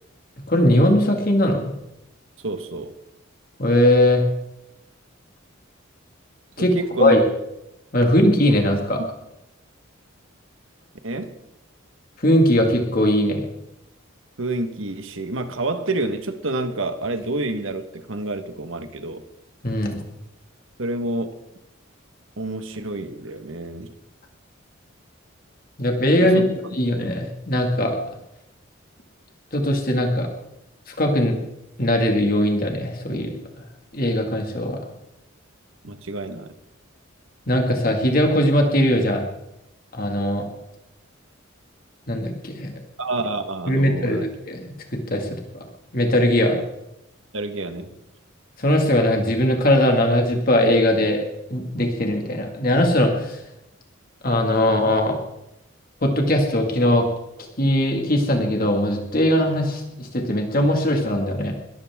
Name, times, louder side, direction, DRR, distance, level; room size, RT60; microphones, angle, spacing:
voice 1, 0.5-1.7 3.6-4.2 6.6-6.7 7.0-7.2 7.9-9.0 12.2-13.4 19.6-20.0 25.8-26.4 26.7-28.0 29.5-30.3 30.9-31.3 31.8-33.3 33.9-34.8 37.5-39.2 39.9-40.4 42.1-42.7 43.7-45.4 45.9-46.6 48.6-51.2 51.5-53.4 54.2-55.2 56.0-57.1 57.6-61.5, left 1 dB, 45° left, 2 dB, 2.1 m, -20 dB
voice 2, 2.4-3.0 6.6-7.2 11.0-11.3 14.4-19.2 20.8-21.4 22.4-23.9 26.2-26.8 35.8-36.5 43.0-44.3 46.5-46.6 47.3-48.0, right 2 dB, 70° right, 8 dB, 1.4 m, -28 dB
22.0 x 13.5 x 3.7 m, 0.89 s
head